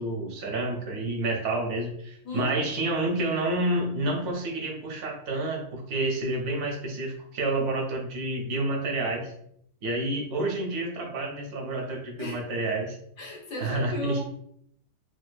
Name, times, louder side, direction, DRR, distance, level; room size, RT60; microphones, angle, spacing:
voice 1, 0.0-9.3 9.8-13.0 13.6-14.2, right 2 dB, 90° right, 1 dB, 1.3 m, -29 dB
voice 2, 2.2-2.5 12.2-12.4 13.2-14.2, left 2 dB, 65° left, -1 dB, 1.1 m, -34 dB
4.1 x 2.4 x 2.2 m, 0.69 s
omnidirectional pair, 1.5 m